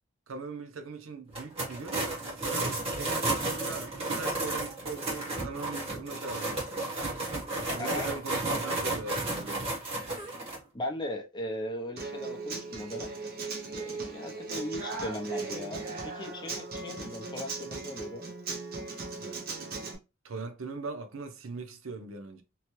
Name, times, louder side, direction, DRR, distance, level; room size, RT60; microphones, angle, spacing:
voice 1, 0.3-6.9 7.7-9.7 19.2-19.4 20.2-22.4, right 3 dB, 80° right, 0.6 m, -41 dB
sound 1, 1.3-10.6, right 2 dB, 30° right, 1.1 m, -32 dB
voice 2, 10.7-13.1 13.7-18.3, left 1 dB, 20° left, 0.5 m, -38 dB
Human voice / Acoustic guitar, 12.0-19.9, right 4 dB, 50° right, 0.7 m, -38 dB
2.9 x 2.2 x 3.0 m
head